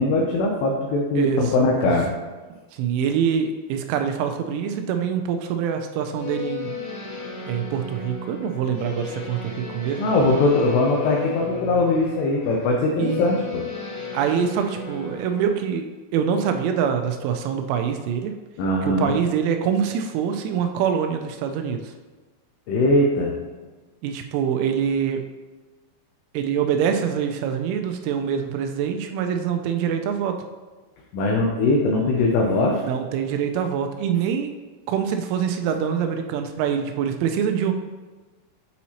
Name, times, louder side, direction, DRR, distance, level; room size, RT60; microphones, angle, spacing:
voice 1, 0.0-2.1 10.0-13.6 18.6-19.2 22.7-23.3 31.1-32.8, left 2 dB, 85° left, -1 dB, 2.4 m, -21 dB
voice 2, 2.8-6.7 7.5-10.1 13.0-13.2 14.1-15.9 16.1-18.3 19.0-21.8 24.0-25.2 26.3-30.4 32.8-34.5 34.9-37.7, right 7 dB, 85° right, 6 dB, 2.9 m, -24 dB
sound 1, 6.2-15.6, left 4 dB, 70° left, 2.8 m, -34 dB
8.3 x 4.2 x 2.8 m, 1.3 s
omnidirectional pair, 5.6 m